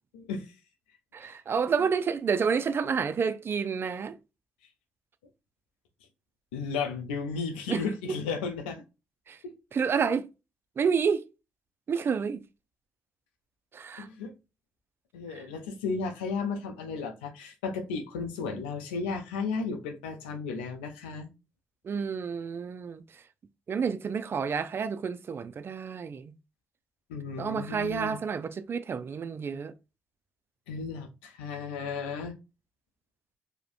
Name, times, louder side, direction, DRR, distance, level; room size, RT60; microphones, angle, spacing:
voice 1, 0.1-0.5 1.2-1.3 6.5-8.8 9.4-9.5 14.0-14.3 15.1-21.3 27.1-28.2 30.7-32.3, left 5 dB, 85° left, 0.4 m, -34 dB
voice 2, 1.1-4.2 7.7-8.2 9.3-9.4 9.7-10.3 10.8-11.2 11.9-12.4 13.7-14.1 15.3-15.4 21.8-23.0 23.7-26.3 27.4-29.7, right 6 dB, 45° right, 0.4 m, -29 dB
2.5 x 2.1 x 2.5 m
hypercardioid pair, 45°, 5 cm